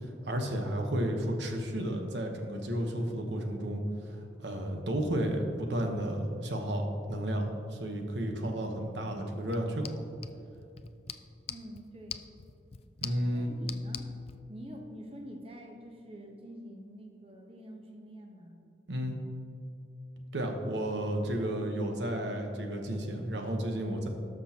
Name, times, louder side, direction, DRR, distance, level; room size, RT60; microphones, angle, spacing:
voice 1, 0.2-10.0 13.0-13.5 18.9-19.2 20.3-24.1, right 1 dB, 85° right, 3 dB, 1.1 m, -32 dB
sound 1, 9.4-14.4, left 8 dB, 35° left, 0.3 m, -45 dB
voice 2, 11.5-12.2 13.3-14.1 14.5-18.6, equal, 30° right, 1 dB, 1.0 m, -46 dB
18.5 x 6.2 x 2.9 m, 2.6 s
head